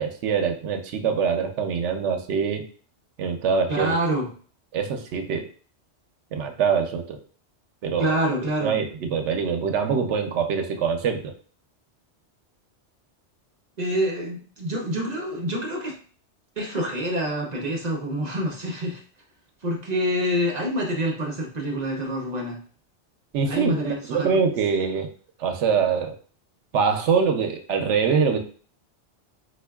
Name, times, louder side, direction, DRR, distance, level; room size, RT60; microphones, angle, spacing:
voice 1, 0.0-2.7 3.2-3.9 4.7-5.5 6.3-7.2 7.8-8.1 8.6-11.2 23.3-25.1 25.4-26.2 26.7-28.4, right 6 dB, 90° right, 5 dB, 0.9 m, -24 dB
voice 2, 3.7-4.3 8.0-8.7 13.8-16.0 16.6-19.0 19.6-22.6 23.5-24.3, equal, 40° right, -1 dB, 0.8 m, -26 dB
4.3 x 2.6 x 2.3 m, 0.42 s
omnidirectional pair, 1.2 m